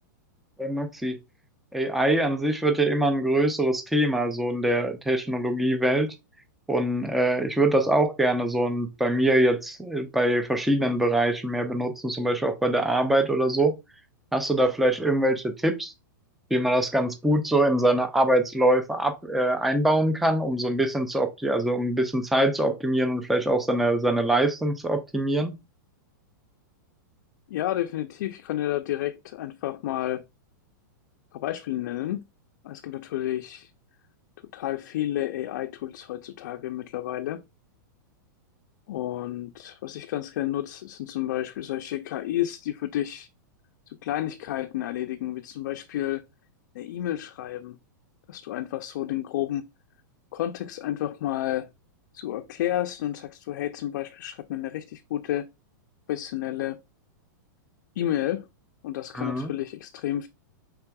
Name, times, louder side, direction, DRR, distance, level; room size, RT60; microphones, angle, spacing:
voice 1, 0.6-1.2 1.7-6.1 6.7-13.7 14.3-15.9 16.5-25.5 59.1-59.5, right 1 dB, ahead, 0.4 m, -23 dB
voice 2, 27.5-30.2 31.3-32.2 32.6-33.7 34.5-37.4 38.9-43.3 43.9-46.2 46.7-47.8 48.3-49.6 50.3-51.7 52.1-55.5 56.1-56.8 58.0-58.5 58.8-60.3, left 13 dB, 60° left, 0.4 m, -31 dB
5.7 x 3.4 x 2.2 m
supercardioid pair, 150°, 11 cm